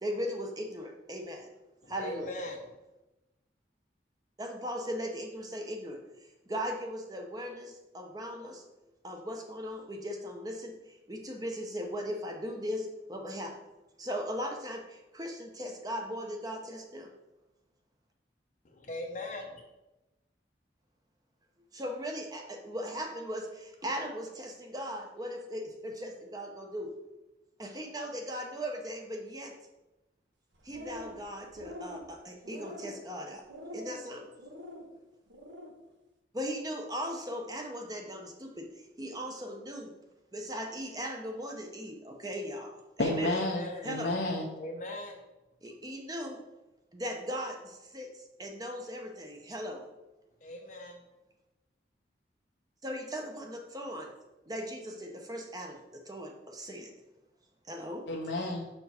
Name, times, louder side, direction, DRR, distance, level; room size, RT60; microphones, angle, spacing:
voice 1, 0.0-1.5 1.9-2.3 4.4-6.0 6.5-8.6 9.0-10.7 11.1-13.5 14.0-17.1 21.7-26.9 27.6-29.5 30.6-33.4 33.7-34.2 36.3-38.7 39.0-39.9 40.3-43.3 43.8-44.1 45.6-46.4 46.9-48.1 48.4-49.8 52.8-54.1 54.5-55.8 56.1-56.9 57.7-58.0, equal, 20° right, 3 dB, 0.8 m, -38 dB
voice 2, 1.8-2.8 18.6-19.6 43.2-43.9 44.6-45.2 50.4-51.0, left 1 dB, 45° left, 1 dB, 0.7 m, -40 dB
sound 1, 30.5-31.2 31.5-32.0 32.4-33.0 33.5-34.0 34.4-34.8 35.3-35.7, left 1 dB, 85° right, 1.3 m, -44 dB
voice 3, 43.0-44.5 58.1-58.7, left 1 dB, 75° left, 0 dB, 0.7 m, -31 dB
6.7 x 4.4 x 4.3 m, 1.0 s
head